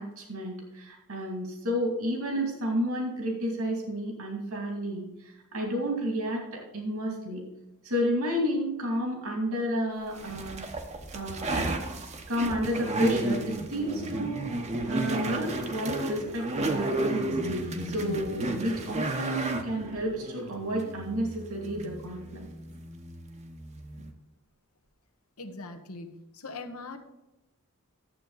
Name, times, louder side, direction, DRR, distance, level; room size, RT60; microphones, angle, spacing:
voice 1, 0.0-7.4 7.8-10.6 11.1-11.7 12.3-14.5 14.9-22.4, equal, 75° right, 1 dB, 2.6 m, -31 dB
sound 1, 10.2-24.1, right 2 dB, 30° right, 0.9 m, -33 dB
voice 2, 25.4-27.0, left 3 dB, 75° left, 5 dB, 1.2 m, -41 dB
11.5 x 7.7 x 4.0 m, 0.98 s
head